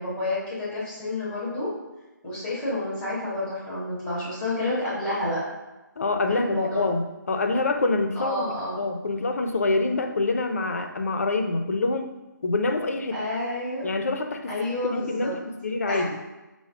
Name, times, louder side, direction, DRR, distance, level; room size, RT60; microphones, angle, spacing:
voice 1, 0.0-1.7 2.2-5.4 6.3-6.8 8.2-8.8 13.1-13.9 14.5-15.3 15.9-16.0, left 2 dB, 5° left, -8 dB, 0.6 m, -29 dB
voice 2, 6.0-12.1 12.4-13.2 13.8-16.2, left 3 dB, 50° left, 6 dB, 0.4 m, -26 dB
4.6 x 2.0 x 3.6 m, 1.1 s
hypercardioid pair, 170°, 11 cm